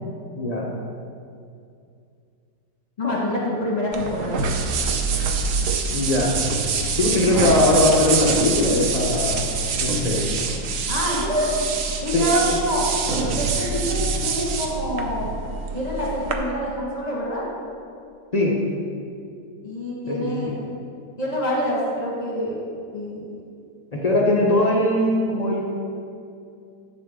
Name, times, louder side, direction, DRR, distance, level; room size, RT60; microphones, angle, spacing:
voice 1, 0.4-0.7 3.0-3.1 5.9-6.3 7.0-9.4 9.8-10.3 12.1-12.3 18.3-18.5 20.1-20.3 23.9-25.6, left 1 dB, 50° left, -3 dB, 0.4 m, -20 dB
voice 2, 3.0-4.4 10.9-11.6 12.0-15.3 15.7-17.4 19.6-20.6 21.2-22.6 22.9-23.2, equal, 25° left, -5 dB, 1.3 m, -26 dB
sound 1, 3.9-16.3, right 4 dB, 65° right, 0.9 m, -25 dB
8.7 x 6.8 x 3.5 m, 2.4 s
omnidirectional pair, 1.9 m